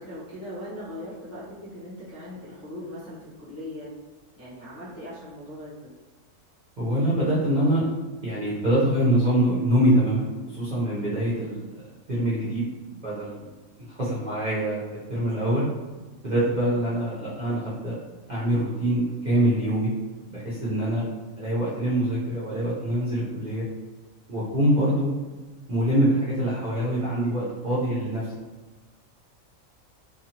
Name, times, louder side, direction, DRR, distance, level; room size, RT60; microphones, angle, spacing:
voice 1, 0.0-3.9 4.4-5.9, left 1 dB, 15° left, -11 dB, 0.7 m, -39 dB
voice 2, 6.8-7.8 8.2-11.8 12.1-12.6 13.0-13.5 13.9-15.6 16.2-18.0 18.3-19.9 20.3-21.1 21.4-23.7 24.3-25.1 25.7-28.3, right 1 dB, 45° right, -10 dB, 0.7 m, -24 dB
2.6 x 2.4 x 2.8 m, 1.2 s
omnidirectional pair, 1.4 m